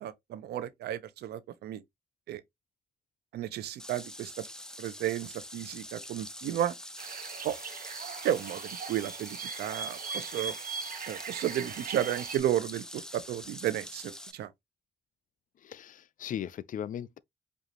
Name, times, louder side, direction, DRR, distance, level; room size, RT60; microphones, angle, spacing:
voice 1, 0.0-1.8 2.3-2.4 3.3-4.4 4.8-6.7 7.4-7.6 8.2-10.5 11.1-14.5, right 11 dB, 85° right, 0.6 m, -33 dB
sound 1, 3.8-14.3, left 1 dB, 5° left, 0.6 m, -45 dB
sound 2, 7.0-12.4, right 5 dB, 60° right, 1.0 m, -40 dB
voice 2, 15.6-17.2, left 9 dB, 55° left, 0.4 m, -38 dB
5.2 x 2.5 x 2.9 m
cardioid pair, 70°, 16 cm